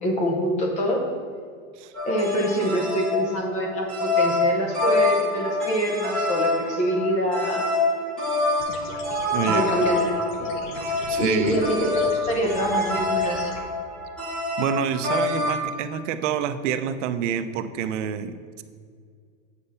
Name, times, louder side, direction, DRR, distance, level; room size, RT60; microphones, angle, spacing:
voice 1, 0.0-1.1 2.0-7.7 9.4-10.5 11.2-13.5, equal, 20° left, 1 dB, 0.7 m, -25 dB
sound 1, 1.9-15.6, left 2 dB, ahead, 1.7 m, -26 dB
sound 2, 8.6-13.6, left 3 dB, 70° left, 1.2 m, -40 dB
voice 2, 9.3-9.7 11.1-11.6 14.6-18.6, right 8 dB, 75° right, 10 dB, 0.6 m, -27 dB
8.5 x 4.4 x 5.5 m, 2.1 s
supercardioid pair, 180°, 37 cm